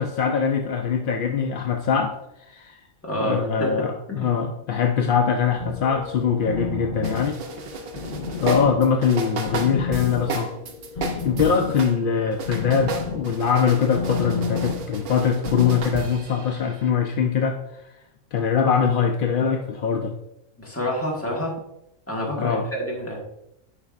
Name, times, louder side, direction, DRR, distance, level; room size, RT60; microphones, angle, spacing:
voice 1, 0.0-2.2 2.5-2.8 3.1-7.4 8.4-10.5 11.2-17.8 18.3-20.1 22.4-22.7, left 6 dB, 70° left, 5 dB, 0.5 m, -22 dB
voice 2, 3.0-4.4 20.6-21.5 22.1-23.2, equal, 10° left, -3 dB, 1.4 m, -28 dB
sound 1, 5.6-15.8, left 5 dB, 45° left, 0.9 m, -32 dB
sound 2, 7.0-12.0 12.3-16.9, right 4 dB, 55° right, 0.8 m, -33 dB
8.4 x 5.4 x 2.4 m, 0.83 s
omnidirectional pair, 1.4 m